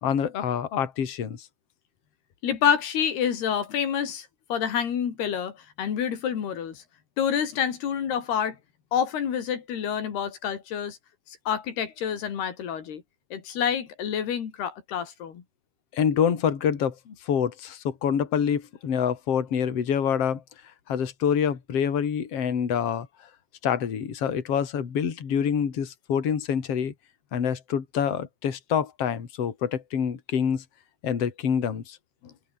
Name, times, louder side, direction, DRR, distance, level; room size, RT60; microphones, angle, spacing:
voice 1, 0.0-1.5 15.9-20.4 20.9-23.1 23.6-26.9 27.3-30.6 31.0-32.0, left 8 dB, 40° left, 3.4 m, -26 dB
voice 2, 2.4-6.8 7.2-8.6 8.9-11.0 11.5-13.0 13.3-15.4 32.2-32.3, left 8 dB, 90° left, 5.2 m, -28 dB
omnidirectional pair, 4.5 m